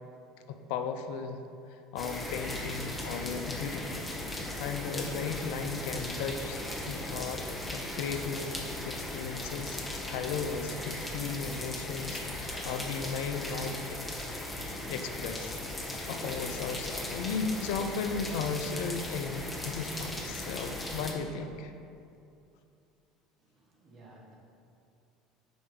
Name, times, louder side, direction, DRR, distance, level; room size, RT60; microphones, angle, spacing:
voice 1, 0.5-1.4 1.7-4.0 4.6-7.4 7.7-8.6 8.9-14.0 14.9-21.7, left 5 dB, 65° left, 7 dB, 0.4 m, -36 dB
sound 1, 2.0-21.1, left 1 dB, 15° left, 1.0 m, -37 dB
voice 2, 23.4-24.4, right 2 dB, 40° right, -2 dB, 1.4 m, -56 dB
6.9 x 4.8 x 3.8 m, 2.6 s
hypercardioid pair, 70°, 0 cm